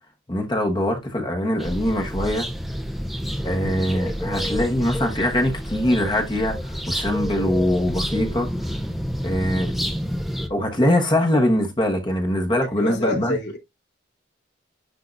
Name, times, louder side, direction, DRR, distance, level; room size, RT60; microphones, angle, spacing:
voice 1, 0.3-2.5 3.4-8.5 9.2-9.7 10.5-13.4, left 1 dB, 25° left, 1.1 m, -22 dB
sound 1, 1.6-10.5, equal, ahead, 0.7 m, -29 dB
voice 2, 12.8-13.6, left 1 dB, 65° left, 3.1 m, -27 dB
10.0 x 3.7 x 2.6 m
head